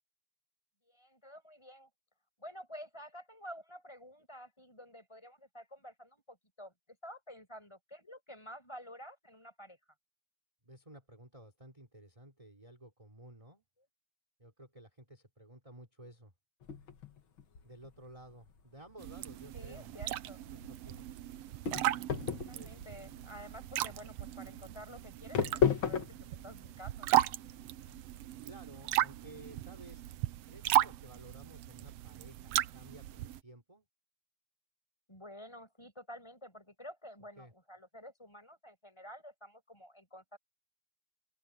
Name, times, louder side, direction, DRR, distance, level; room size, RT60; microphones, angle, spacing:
voice 1, 0.9-1.9 2.4-6.7 7.0-9.8 19.5-20.5 22.3-27.2 35.1-40.4, equal, 10° left, 6.6 m, -50 dB
voice 2, 10.6-13.6 14.4-16.3 17.6-19.9 20.5-21.2 22.5-22.9 28.4-30.0 30.5-33.9 37.4-37.5, right 1 dB, 10° right, 3.5 m, -54 dB
sound 1, 16.6-28.0, left 7 dB, 45° left, 2.2 m, -36 dB
sound 2, 19.0-33.4, right 14 dB, 80° right, 1.4 m, -36 dB
open air
omnidirectional pair, 3.6 m